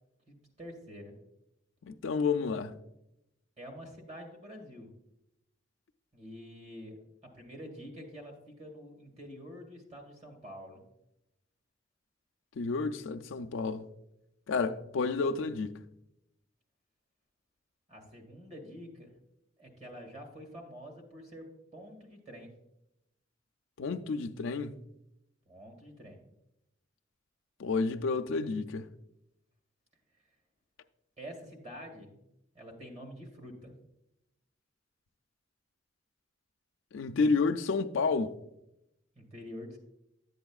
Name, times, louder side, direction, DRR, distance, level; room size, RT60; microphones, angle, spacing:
voice 1, 0.3-1.2 3.6-4.9 6.1-10.8 17.9-19.1 19.6-22.5 25.5-26.3 31.2-32.2 32.5-33.7 39.2-39.8, equal, 35° right, 1.8 m, -47 dB
voice 2, 1.8-2.7 12.6-13.9 14.5-15.8 23.8-24.8 27.6-28.9 36.9-38.4, left 4 dB, 75° left, 0.4 m, -30 dB
11.0 x 7.8 x 2.4 m
head